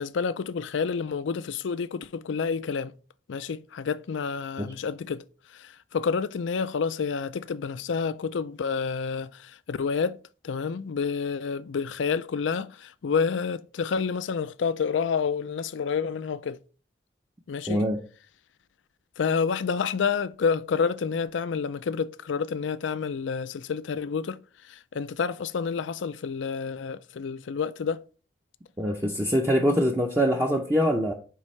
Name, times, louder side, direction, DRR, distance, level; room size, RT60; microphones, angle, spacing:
voice 1, 0.0-2.9 3.3-5.2 5.5-10.2 10.4-16.6 17.5-17.8 19.2-24.4 24.7-28.0, left 5 dB, 90° left, 0.4 m, -29 dB
voice 2, 17.7-18.0 28.8-31.1, equal, 15° right, 0.6 m, -24 dB
9.4 x 3.6 x 3.2 m
head